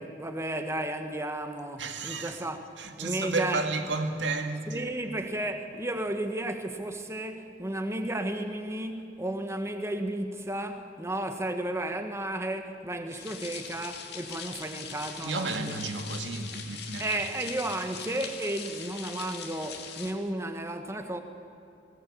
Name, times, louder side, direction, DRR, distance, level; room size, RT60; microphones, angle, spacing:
voice 1, 0.0-2.6 3.0-3.7 4.7-15.8 17.0-21.2, right 1 dB, 15° right, 1.6 m, -33 dB
voice 2, 1.8-2.4 2.8-4.9 15.2-17.1, right 3 dB, 75° right, 2.0 m, -32 dB
sound 1, 13.1-20.1, left 7 dB, 60° left, 2.3 m, -41 dB
20.0 x 19.0 x 8.6 m
head